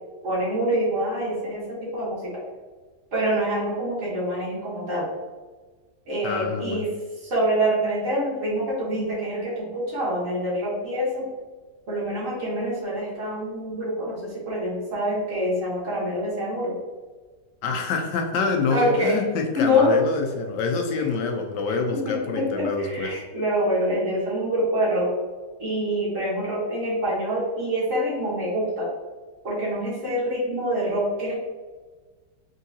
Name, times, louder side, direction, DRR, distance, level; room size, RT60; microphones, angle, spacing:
voice 1, 0.2-2.3 3.1-5.1 6.1-6.9 7.2-11.2 11.9-16.8 18.7-19.2 19.5-19.9 20.9-21.1 21.7-21.8 22.0-25.1 25.6-28.9 29.4-31.3, equal, 45° right, -6 dB, 1.6 m, -26 dB
voice 2, 6.2-6.8 17.6-23.2, left 4 dB, 75° left, 3 dB, 1.1 m, -26 dB
3.9 x 3.6 x 2.7 m, 1.4 s
omnidirectional pair, 2.0 m